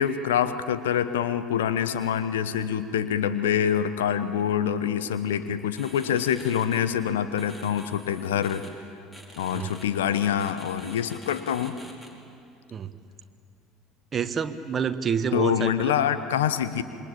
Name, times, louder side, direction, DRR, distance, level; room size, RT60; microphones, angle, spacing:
voice 1, 0.0-8.6 9.4-11.8 15.3-16.8, left 9 dB, 75° left, 12 dB, 0.9 m, -25 dB
sound 1, 5.7-6.8 7.4-8.7 9.1-9.8 10.1-12.1, left 1 dB, 20° left, 5.0 m, -46 dB
voice 2, 14.1-15.9, right 7 dB, 35° right, 8 dB, 1.3 m, -28 dB
27.0 x 22.5 x 8.8 m, 2.5 s
figure-of-eight pair, 65°, 0 cm